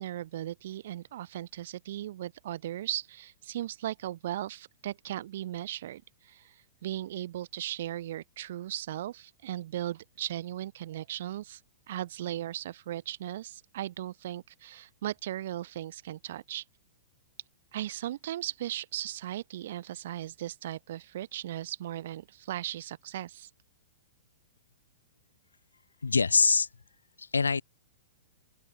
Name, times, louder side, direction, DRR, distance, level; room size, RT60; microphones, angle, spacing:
voice 1, 0.0-6.5 6.8-11.6 11.9-16.6 17.7-23.5, right 13 dB, 60° right, 4.4 m, -37 dB
voice 2, 26.0-26.7 27.2-27.6, left 4 dB, 85° left, 2.8 m, -24 dB
open air
hypercardioid pair, 110°, 0 cm